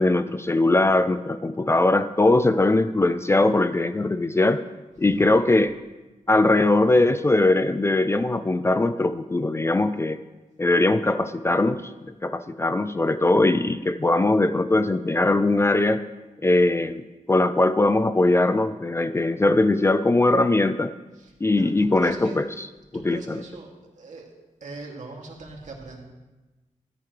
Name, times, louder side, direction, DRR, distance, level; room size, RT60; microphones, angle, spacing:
voice 1, 0.0-4.7 5.0-5.7 6.3-10.2 10.6-11.9 12.2-16.0 16.4-20.9 21.4-22.4 22.9-23.4, left 2 dB, 20° left, 12 dB, 0.4 m, -21 dB
voice 2, 5.0-5.3 21.1-22.4 22.9-24.3 24.6-26.0, right 2 dB, 65° right, -1 dB, 2.5 m, -40 dB
15.0 x 13.5 x 3.3 m, 1.1 s
wide cardioid pair, 175°, 13 cm